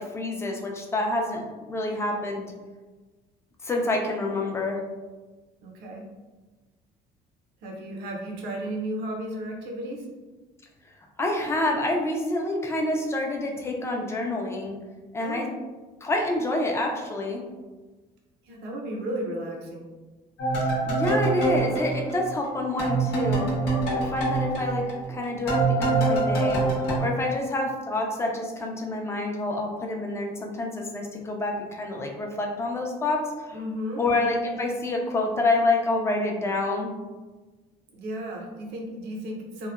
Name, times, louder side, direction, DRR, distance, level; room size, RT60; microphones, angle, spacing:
voice 1, 0.0-2.5 3.6-4.8 11.2-14.7 15.1-15.5 16.0-17.4 20.6-23.5 23.9-33.6 34.0-36.9, left 2 dB, 15° left, 1 dB, 0.4 m, -27 dB
voice 2, 5.6-6.1 7.6-10.1 15.2-15.5 18.4-19.9 33.5-34.0 37.9-39.7, right 1 dB, 85° right, 0 dB, 0.6 m, -34 dB
sound 1, 20.4-22.5 22.8-27.0, right 2 dB, 90° left, 0.8 m, -25 dB
2.7 x 2.1 x 2.3 m, 1.3 s
cardioid pair, 110°, 17 cm